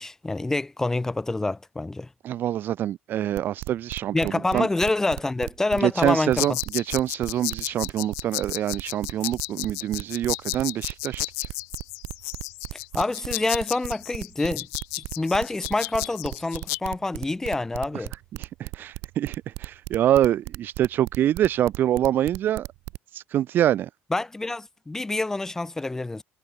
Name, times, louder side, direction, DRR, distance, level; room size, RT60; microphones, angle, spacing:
voice 1, 0.0-2.1 4.1-6.6 12.9-14.7 14.9-18.1 24.1-26.2, left 2 dB, 10° left, 4.8 m, -27 dB
voice 2, 2.2-4.7 5.8-11.2 18.4-22.7 23.1-23.9, right 11 dB, 50° right, 3.4 m, -25 dB
sound 1, 3.4-23.0, right 23 dB, 80° right, 1.6 m, -36 dB
sound 2, 6.4-16.8, left 30 dB, 90° left, 4.1 m, -33 dB
cardioid pair, 135°, 4 cm